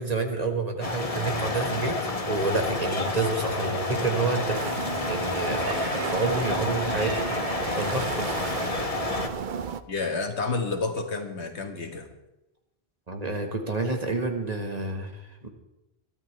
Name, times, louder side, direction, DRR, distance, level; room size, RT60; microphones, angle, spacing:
voice 1, 0.0-2.0 2.3-7.3 7.7-8.4 13.1-15.5, right 3 dB, 35° right, 4 dB, 1.6 m, -29 dB
sound 1, 0.8-9.3, left 2 dB, 35° left, 1.2 m, -29 dB
Laughter, 3.9-5.3 5.6-6.6 6.8-9.4, right 2 dB, 80° right, 3.9 m, -43 dB
sound 2, 4.5-9.8, right 6 dB, 55° right, 0.7 m, -34 dB
voice 2, 9.9-12.1, left 3 dB, 85° left, 5 dB, 1.9 m, -30 dB
22.0 x 13.0 x 3.3 m, 0.93 s
omnidirectional pair, 1.1 m